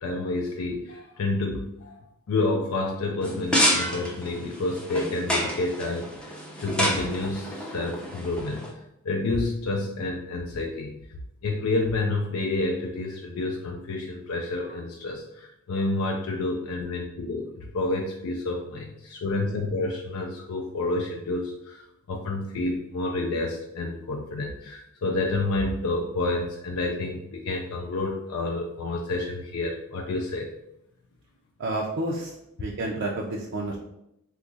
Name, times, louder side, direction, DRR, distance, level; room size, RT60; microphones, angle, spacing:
voice 1, 0.0-8.7 9.0-11.0 11.4-30.5, left 2 dB, 75° left, 1 dB, 0.4 m, -29 dB
sound 1, 3.2-8.7, equal, 5° left, 0.5 m, -29 dB
voice 2, 31.6-32.3 32.6-33.8, right 2 dB, 55° right, -2 dB, 0.4 m, -30 dB
2.8 x 2.4 x 3.8 m, 0.80 s
head